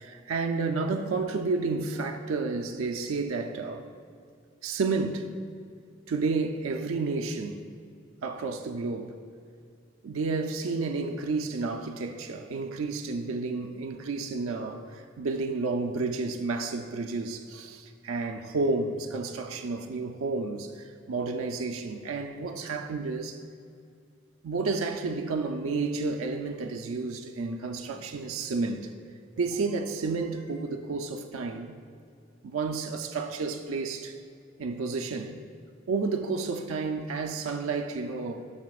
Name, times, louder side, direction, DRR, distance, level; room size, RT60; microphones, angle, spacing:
voice 1, 0.0-3.9 4.6-5.3 6.1-7.7 8.2-9.1 10.0-23.4 24.4-28.8 29.4-31.8 32.4-34.2 34.6-35.4 35.9-38.5, right 3 dB, 90° right, 0.4 m, -31 dB
sound 1, 27.7-28.2 28.5-29.0 29.4-29.8 30.2-30.9, equal, 30° left, 1.2 m, -58 dB
12.0 x 5.7 x 2.3 m
head